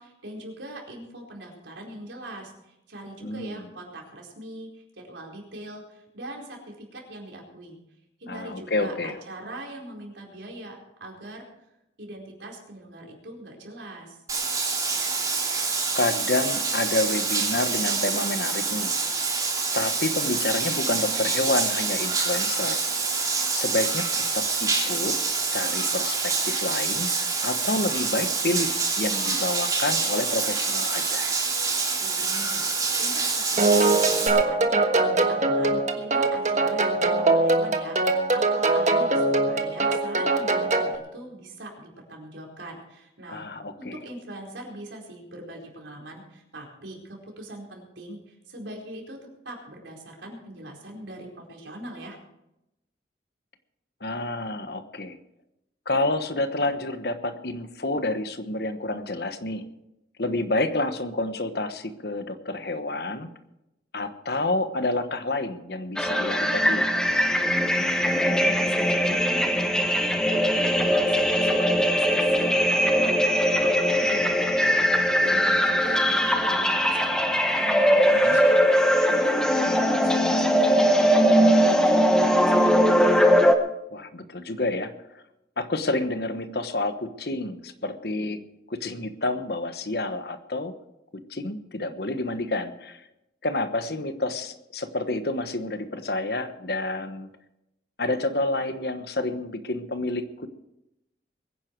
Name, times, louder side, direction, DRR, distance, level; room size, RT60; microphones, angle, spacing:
voice 1, 0.0-7.8 8.2-11.4 12.0-14.2 32.0-32.6 33.0-43.4 43.8-49.2 49.4-52.2 67.8-83.2, right 1 dB, 90° right, 0 dB, 4.6 m, -41 dB
voice 2, 3.2-3.6 8.3-9.2 15.5-18.9 19.7-22.8 23.5-25.2 25.5-27.1 27.4-31.3 43.3-44.0 54.0-55.2 55.9-59.6 60.2-63.3 63.9-66.9 78.1-78.4 83.9-85.2 85.6-88.4 88.7-90.7 91.1-93.0 93.4-97.3 98.0-100.5, left 2 dB, 60° left, 10 dB, 1.2 m, -29 dB
Bathtub (filling or washing), 14.3-34.3, right 4 dB, 20° right, 3.1 m, -26 dB
sound 1, 33.6-41.0, right 2 dB, 40° right, 1.4 m, -22 dB
sound 2, 66.0-83.5, equal, 5° left, 1.0 m, -21 dB
22.5 x 10.0 x 4.6 m, 0.88 s
head